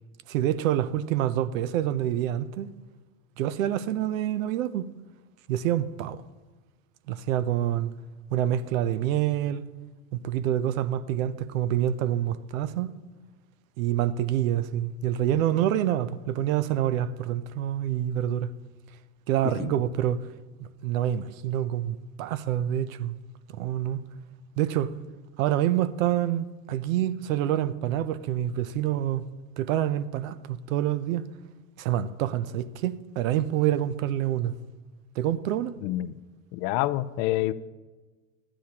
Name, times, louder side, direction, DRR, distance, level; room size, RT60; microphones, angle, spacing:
voice 1, 0.3-2.7 3.4-4.9 5.5-6.2 7.1-7.9 8.3-9.6 10.1-12.9 13.8-18.5 19.3-20.3 20.6-23.2 23.5-24.0 24.6-24.9 25.4-29.2 29.6-31.2 31.8-34.5 35.2-35.7, right 11 dB, 75° right, 0.7 m, -27 dB
voice 2, 35.8-36.1 36.5-37.5, left 15 dB, 55° left, 0.5 m, -27 dB
14.0 x 10.0 x 2.9 m
hypercardioid pair, 85°, 40 cm